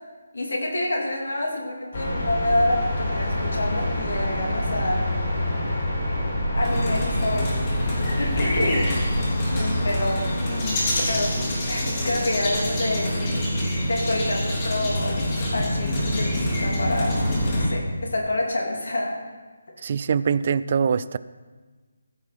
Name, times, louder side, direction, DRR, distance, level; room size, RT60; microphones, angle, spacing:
voice 1, 0.3-5.0 6.5-7.6 8.2-8.9 9.5-13.1 13.8-15.2 15.5-17.2 17.5-19.1, left 1 dB, 65° left, -1 dB, 3.1 m, -27 dB
sound 1, 1.9-15.9, left 1 dB, 45° left, 4.5 m, -29 dB
sound 2, 6.6-17.7, left 1 dB, 30° left, 3.7 m, -26 dB
voice 2, 19.8-21.2, right 6 dB, 45° right, 17 dB, 0.4 m, -23 dB
15.5 x 5.9 x 6.0 m, 1.4 s
figure-of-eight pair, 150°, 0 cm